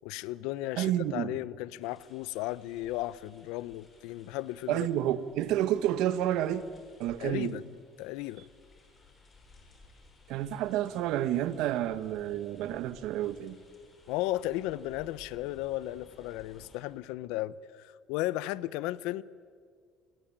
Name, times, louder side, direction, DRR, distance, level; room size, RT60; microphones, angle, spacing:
voice 1, 0.0-4.9 7.2-7.6 8.0-8.4 14.1-19.2, left 16 dB, 90° left, 0.7 m, -35 dB
voice 2, 0.8-1.4 4.7-6.6 7.0-7.6 10.3-13.6, right 12 dB, 75° right, 1.4 m, -30 dB
sound 1, 1.8-16.8, left 3 dB, 25° left, 6.3 m, -59 dB
29.0 x 22.0 x 8.8 m
cardioid pair, 135°, 0 cm